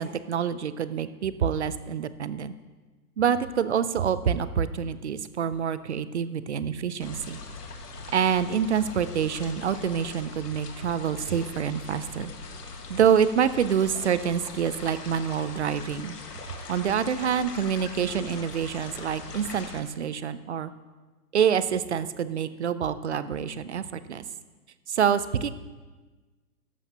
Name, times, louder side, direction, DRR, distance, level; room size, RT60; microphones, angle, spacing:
voice 1, 0.0-2.5 3.2-7.4 8.1-12.3 12.9-16.2 16.4-20.7 21.3-24.2 24.9-25.5, right 8 dB, 45° right, 14 dB, 0.5 m, -26 dB
sound 1, 7.0-19.8, left 3 dB, 80° left, 1.9 m, -41 dB
13.5 x 11.0 x 2.9 m, 1.3 s
hypercardioid pair, 165°, 47 cm